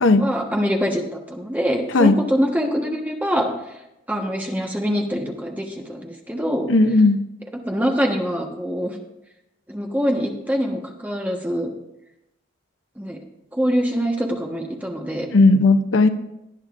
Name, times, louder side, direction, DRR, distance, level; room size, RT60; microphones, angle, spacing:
voice 1, 0.2-3.5 4.1-6.7 7.6-9.0 9.7-11.7 13.0-13.2 13.5-15.3, equal, 10° right, 1 dB, 1.2 m, -24 dB
voice 2, 6.7-7.2 15.3-16.1, left 3 dB, 70° left, 10 dB, 0.6 m, -15 dB
18.5 x 10.0 x 2.5 m, 0.89 s
head